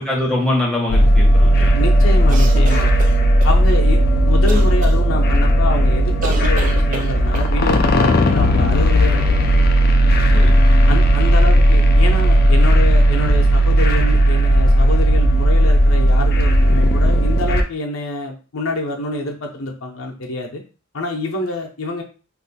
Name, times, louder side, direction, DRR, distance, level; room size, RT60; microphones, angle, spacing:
voice 1, 0.0-2.0 10.3-10.6, left 1 dB, 5° left, -5 dB, 1.0 m, -23 dB
sound 1, 0.9-17.6, equal, 50° left, 0.4 m, -14 dB
voice 2, 1.8-2.9 3.4-4.0 4.3-9.5 10.9-20.6 20.9-22.0, left 2 dB, 90° left, 1 dB, 0.7 m, -26 dB
sound 2, 2.3-3.5 4.5-4.9 6.2-7.5, right 3 dB, 40° right, 0.4 m, -29 dB
2.6 x 2.4 x 4.0 m, 0.36 s
head